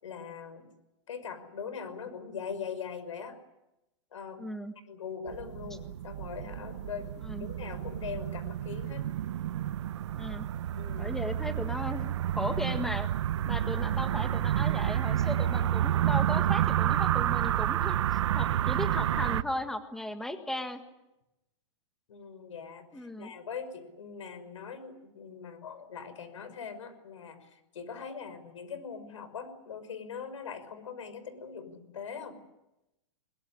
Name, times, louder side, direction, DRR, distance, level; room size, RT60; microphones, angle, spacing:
voice 1, 0.0-0.7 1.1-3.4 4.1-4.4 4.9-9.1 10.8-11.2 22.1-32.4, left 6 dB, 80° left, 12 dB, 5.8 m, -41 dB
voice 2, 4.4-4.7 7.2-7.5 10.1-10.5 11.0-12.1 12.3-13.1 13.4-20.8 22.9-23.3, left 1 dB, ahead, 8 dB, 1.6 m, -36 dB
sound 1, 5.3-19.4, right 11 dB, 65° right, 1.0 m, -29 dB
22.0 x 21.0 x 10.0 m, 0.93 s
hypercardioid pair, 155°, 16 cm